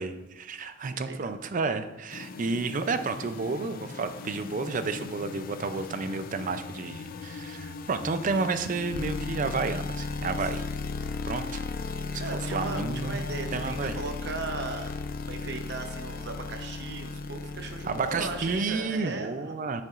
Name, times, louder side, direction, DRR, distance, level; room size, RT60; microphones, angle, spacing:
voice 1, 0.0-10.7 11.3-11.6 12.1-12.2 12.5-13.2 13.5-14.0 17.8-19.8, right 4 dB, 45° right, 10 dB, 0.4 m, -31 dB
voice 2, 0.9-1.3 10.2-10.5 11.0-11.2 12.2-15.0 15.3-19.5, right 3 dB, 60° right, 5 dB, 0.8 m, -37 dB
sound 1, 2.1-18.6, left 4 dB, 45° left, 0.3 m, -36 dB
6.8 x 6.7 x 2.5 m, 0.97 s
head